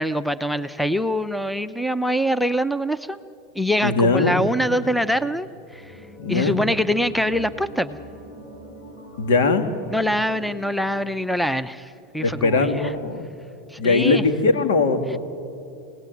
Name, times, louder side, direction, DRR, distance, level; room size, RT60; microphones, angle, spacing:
voice 1, 0.0-3.2 3.5-5.5 5.7-5.9 6.3-8.0 9.9-12.9 13.7-14.2, equal, ahead, 15 dB, 0.7 m, -24 dB
voice 2, 3.8-4.3 6.2-6.6 9.2-9.7 12.2-13.2 13.8-15.2, left 3 dB, 80° left, 7 dB, 2.4 m, -20 dB
sound 1, 5.7-12.7 13.0-13.1, equal, 50° left, 6.8 m, -44 dB
26.5 x 18.5 x 9.3 m, 2.6 s
supercardioid pair, 115°, 0 cm